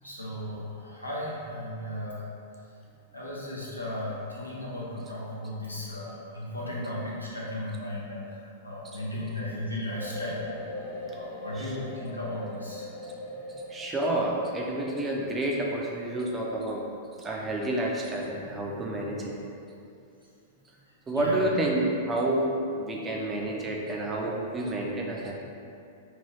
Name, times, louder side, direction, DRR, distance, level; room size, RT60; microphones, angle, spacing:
voice 1, 0.0-2.3 3.1-10.4 11.1-12.9 21.1-21.4, left 1 dB, 90° left, -6 dB, 0.6 m, -35 dB
sound 1, 10.0-16.9, left 2 dB, 40° left, 0.4 m, -41 dB
voice 2, 13.7-16.8 17.2-19.4 21.1-25.3, right 1 dB, 15° right, -2 dB, 0.5 m, -29 dB
2.7 x 2.6 x 3.1 m, 2.6 s
figure-of-eight pair, 95°, 0 cm